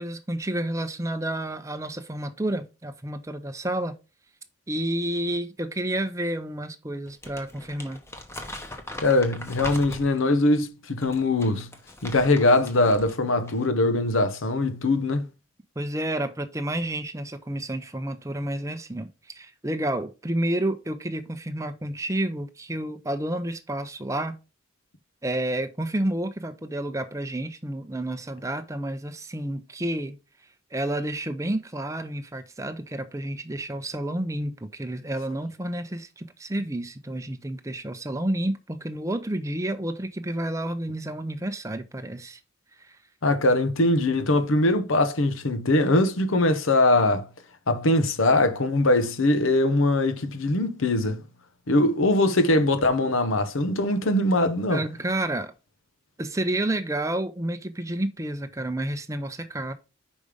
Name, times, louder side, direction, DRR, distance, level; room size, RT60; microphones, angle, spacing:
voice 1, 0.0-3.9 4.7-8.0 15.8-24.4 25.2-30.2 30.7-42.4 42.8-43.0 54.7-55.5 56.2-59.7, right 1 dB, 15° right, 0.6 m, -30 dB
Crumpling crinkling, 7.1-10.3 10.9-13.1 13.4-13.7, left 1 dB, 10° left, 0.9 m, -40 dB
voice 2, 9.0-11.7 12.0-15.2 43.2-47.3 47.7-51.2 51.7-54.8, left 2 dB, 75° left, 0.9 m, -22 dB
5.2 x 5.0 x 5.0 m
head